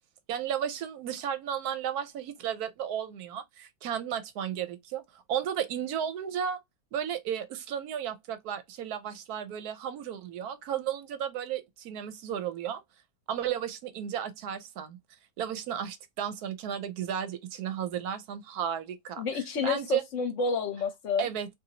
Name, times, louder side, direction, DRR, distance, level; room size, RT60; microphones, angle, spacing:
voice 1, 0.3-5.0 5.3-6.6 6.9-12.8 13.3-15.0 15.4-20.0 21.2-21.5, right 9 dB, 85° right, 1.2 m, -34 dB
voice 2, 19.2-21.3, left 5 dB, 60° left, 0.9 m, -30 dB
2.7 x 2.6 x 2.8 m
omnidirectional pair, 1.6 m